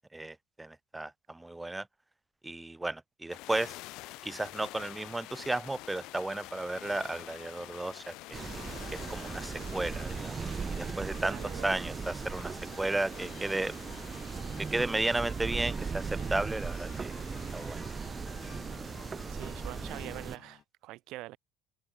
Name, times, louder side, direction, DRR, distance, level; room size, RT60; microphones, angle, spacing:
voice 1, 0.1-1.9 2.4-3.8 4.2-8.4 8.9-13.7 14.6-17.2 17.5-17.9, right 2 dB, 10° right, 2.7 m, -34 dB
sound 1, 3.3-18.1, left 20 dB, 60° left, 1.1 m, -49 dB
sound 2, 8.3-20.6, left 10 dB, 45° left, 1.9 m, -51 dB
sound 3, 8.3-20.4, right 5 dB, 30° right, 0.5 m, -38 dB
voice 2, 11.2-11.8 19.3-21.4, right 18 dB, 60° right, 1.5 m, -44 dB
open air
figure-of-eight pair, 60°, 0 cm